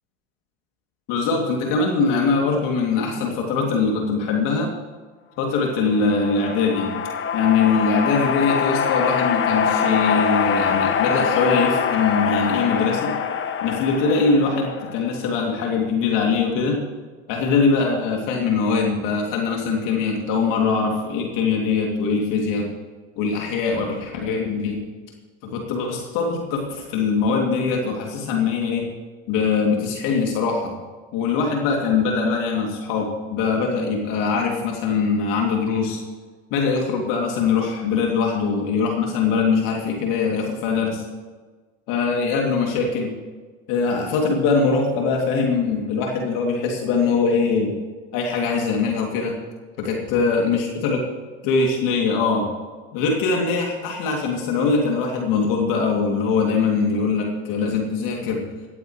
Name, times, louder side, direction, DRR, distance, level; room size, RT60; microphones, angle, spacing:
voice 1, 1.1-4.7 5.4-7.0 7.3-13.1 13.6-16.8 17.3-22.7 23.2-24.8 25.4-28.9 29.3-30.7 31.1-36.0 36.5-41.0 41.9-43.1 43.7-47.8 48.1-49.4 49.8-51.0 51.4-52.5 52.9-58.5, left 4 dB, 60° left, 0 dB, 2.7 m, -22 dB
sound 1, 5.7-15.3, left 7 dB, 35° left, 1.3 m, -24 dB
18.0 x 14.5 x 3.2 m, 1.4 s
hypercardioid pair, 85°, 37 cm